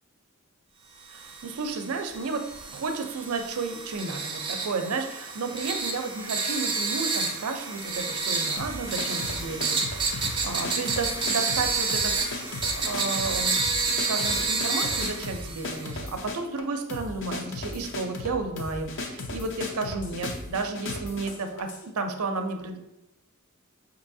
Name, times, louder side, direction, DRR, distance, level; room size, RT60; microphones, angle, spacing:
sound 1, 1.1-16.0, right 4 dB, 25° right, 0.5 m, -30 dB
voice 1, 1.1-12.4 12.7-13.5 14.1-22.8, right 4 dB, 80° right, 6 dB, 0.5 m, -32 dB
sound 2, 8.6-21.9, left 2 dB, 60° left, 0.6 m, -36 dB
5.4 x 2.8 x 2.6 m, 0.92 s
head